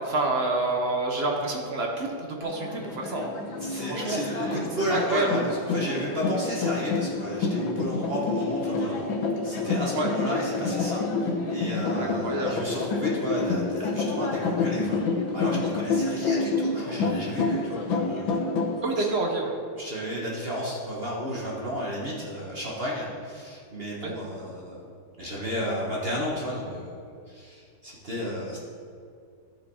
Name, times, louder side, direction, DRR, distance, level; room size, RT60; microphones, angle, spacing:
voice 1, 0.0-3.3 3.7-4.6 4.9-5.4 10.0-10.1 12.0-12.6 18.8-19.6 24.0-24.1, right 2 dB, 55° right, 1 dB, 0.6 m, -28 dB
sound 1, 2.4-18.8, left 3 dB, 70° left, 1.7 m, -28 dB
voice 2, 3.6-9.1 9.4-18.4 19.0-19.1 19.7-24.9 25.2-28.6, equal, 35° right, -5 dB, 1.2 m, -33 dB
13.5 x 5.0 x 4.2 m, 2.4 s
omnidirectional pair, 2.3 m